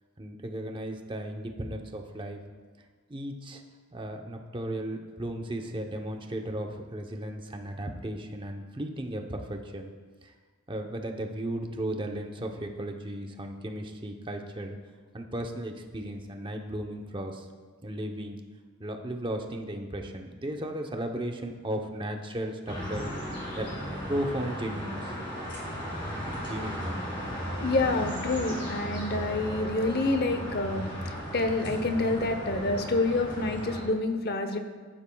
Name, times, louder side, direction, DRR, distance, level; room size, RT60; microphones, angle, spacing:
voice 1, 0.2-2.4 3.1-3.6 3.9-9.9 10.2-10.3 10.7-14.8 15.1-17.5 17.8-18.4 18.8-23.1 23.6-25.1 26.3-27.1, right 1 dB, 20° right, 3 dB, 0.8 m, -35 dB
sound 1, 22.7-33.8, equal, 20° left, 2.6 m, -35 dB
voice 2, 27.6-34.6, left 2 dB, 45° left, 7 dB, 0.8 m, -28 dB
14.0 x 10.5 x 2.3 m, 1.4 s
head